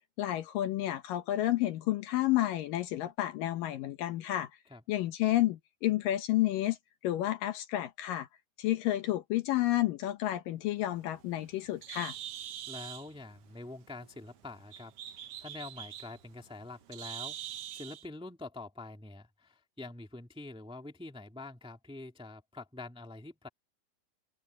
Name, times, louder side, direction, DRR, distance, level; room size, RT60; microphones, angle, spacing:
voice 1, 0.2-4.5 4.9-6.8 7.0-8.3 8.6-12.2, left 14 dB, 70° left, 2.5 m, -30 dB
Bird, 10.8-18.0, right 11 dB, 75° right, 1.4 m, -45 dB
voice 2, 12.7-17.4 17.7-23.5, left 2 dB, ahead, 1.5 m, -46 dB
open air
omnidirectional pair, 4.3 m